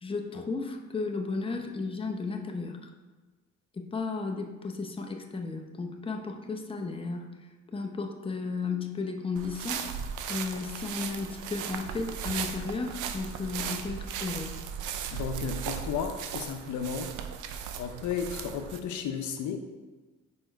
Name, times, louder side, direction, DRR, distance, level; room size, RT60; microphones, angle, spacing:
voice 1, 0.0-2.9 3.8-7.3 7.7-9.8 10.3-14.5, left 4 dB, 20° left, 3 dB, 0.7 m, -34 dB
sound 1, 9.4-18.8, right 7 dB, 90° right, 0.6 m, -37 dB
voice 2, 15.1-17.1 17.8-19.6, left 6 dB, 75° left, 6 dB, 0.7 m, -33 dB
5.3 x 4.3 x 4.5 m, 1.3 s
cardioid pair, 90°, 30 cm